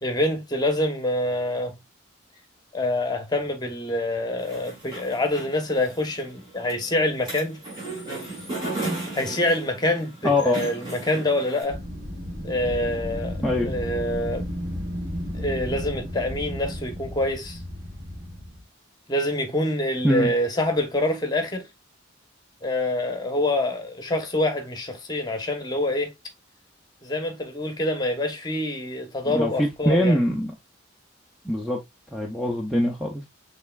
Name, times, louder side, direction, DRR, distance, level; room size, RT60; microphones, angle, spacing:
voice 1, 0.0-1.7 2.7-7.6 9.1-11.8 12.4-13.4 13.6-14.5 15.4-17.6 19.1-21.7 22.6-26.1 27.0-30.2, left 1 dB, 20° left, 1.0 m, -26 dB
sound 1, 4.4-11.6, right 2 dB, 25° right, 3.6 m, -35 dB
voice 2, 10.2-10.6 13.4-13.7 20.0-20.3 29.2-30.5 31.4-31.8 32.1-33.3, left 1 dB, ahead, 0.6 m, -23 dB
Wind, 11.7-18.6, equal, 75° right, 1.6 m, -33 dB
6.6 x 3.3 x 2.4 m
head